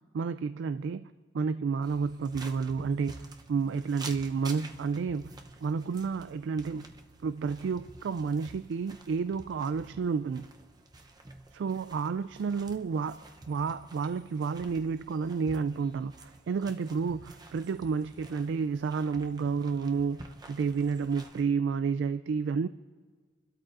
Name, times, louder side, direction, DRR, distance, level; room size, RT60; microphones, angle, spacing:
voice 1, 0.1-5.3 5.6-6.8 7.2-10.4 11.5-13.2 13.5-20.2 20.5-22.7, right 5 dB, 70° right, 0.3 m, -30 dB
sound 1, 1.8-21.4, right 2 dB, 20° right, 0.7 m, -49 dB
27.5 x 12.5 x 2.5 m
head